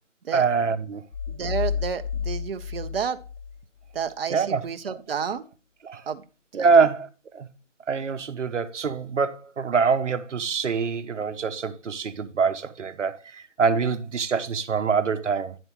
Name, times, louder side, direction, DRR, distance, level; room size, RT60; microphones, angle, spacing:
voice 1, 0.3-1.0 4.3-4.6 5.8-6.0 6.5-7.5 7.9-15.6, right 5 dB, 70° right, 1.0 m, -24 dB
sound 1, 1.1-4.0, left 7 dB, 50° left, 0.5 m, -31 dB
voice 2, 1.3-3.2 3.9-5.4 6.1-6.2 6.6-6.8, right 6 dB, 50° right, 0.7 m, -30 dB
10.0 x 7.7 x 3.0 m
figure-of-eight pair, 160°, 37 cm